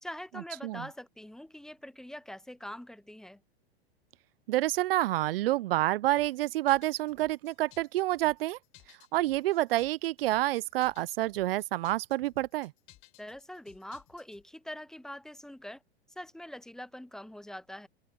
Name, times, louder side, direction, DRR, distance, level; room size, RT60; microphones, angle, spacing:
voice 1, 0.0-3.4 13.2-15.8 16.2-17.9, left 1 dB, ahead, 0.6 m, -44 dB
voice 2, 4.5-8.6 9.1-12.7, right 16 dB, 65° right, 0.6 m, -28 dB
sound 1, 6.2-14.4, left 18 dB, 40° left, 4.5 m, -59 dB
hypercardioid pair, 100°, 32 cm